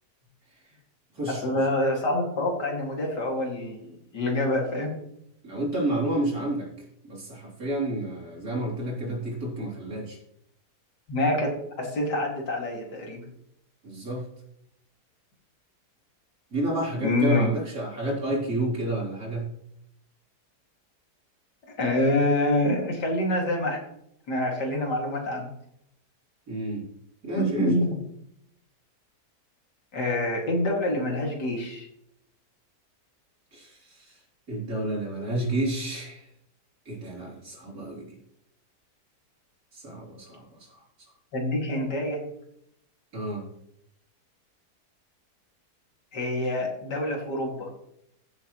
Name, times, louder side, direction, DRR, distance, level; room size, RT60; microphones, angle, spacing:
voice 1, 1.3-4.9 11.1-13.2 17.0-17.5 21.8-23.8 24.3-25.5 27.4-27.9 29.9-31.9 41.3-42.2 46.1-47.7, left 1 dB, 85° left, 0 dB, 3.0 m, -26 dB
voice 2, 5.4-6.7 7.0-10.2 13.8-14.2 16.5-19.5 26.5-26.9 27.2-27.8 33.5-34.1 34.5-36.2 36.9-38.2 39.7-40.7 43.1-43.4, right 1 dB, 60° right, -4 dB, 4.1 m, -30 dB
15.0 x 7.3 x 3.1 m, 0.75 s
omnidirectional pair, 1.8 m